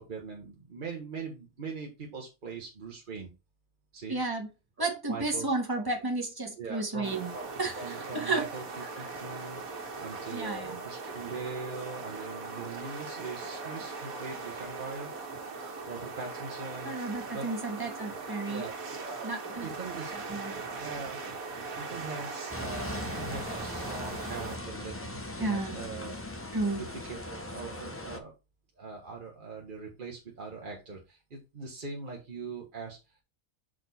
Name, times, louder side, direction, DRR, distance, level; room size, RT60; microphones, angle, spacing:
voice 1, 0.0-3.3 3.9-4.2 4.8-5.5 5.7-5.8 6.6-7.5 7.7-8.6 8.9-9.6 10.0-15.1 15.8-16.9 17.3-17.5 18.5-19.3 19.6-20.1 20.7-21.2 21.8-26.2 26.7-28.3 28.8-33.2, right 4 dB, 40° right, 0 dB, 1.1 m, -41 dB
voice 2, 4.1-4.5 4.8-7.3 7.6-8.5 10.3-10.8 16.8-18.7 19.2-19.7 20.1-20.5 25.4-25.7 26.5-26.8, right 3 dB, 15° right, 1 dB, 1.4 m, -32 dB
sound 1, 7.0-24.6, right 4 dB, 80° right, 1.7 m, -40 dB
sound 2, 22.5-28.2, left 1 dB, 20° left, 0.4 m, -39 dB
6.2 x 4.3 x 4.0 m, 0.27 s
omnidirectional pair, 1.5 m